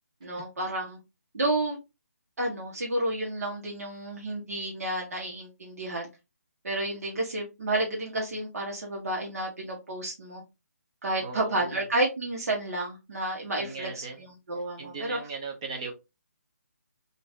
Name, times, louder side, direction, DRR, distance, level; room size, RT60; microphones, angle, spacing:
voice 1, 0.2-1.0 1.3-1.8 2.4-6.1 6.6-10.4 11.0-15.2, right 1 dB, 60° right, -2 dB, 1.3 m, -31 dB
voice 2, 11.2-11.8 13.6-14.2 14.8-15.9, right 4 dB, 20° right, 2 dB, 0.6 m, -38 dB
3.9 x 2.6 x 2.6 m, 0.25 s
hypercardioid pair, 170°, 9 cm